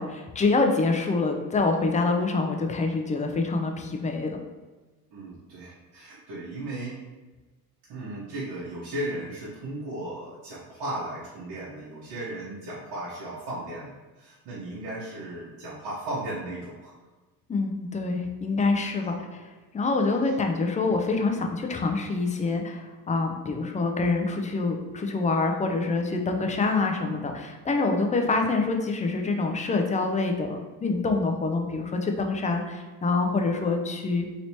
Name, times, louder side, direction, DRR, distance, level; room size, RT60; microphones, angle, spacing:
voice 1, 0.0-4.4 17.5-34.3, left 3 dB, 15° left, 3 dB, 0.4 m, -26 dB
voice 2, 5.1-7.0 7.9-16.9, right 1 dB, 55° right, -8 dB, 1.1 m, -36 dB
3.0 x 3.0 x 2.8 m, 1.2 s
hypercardioid pair, 65°, 46 cm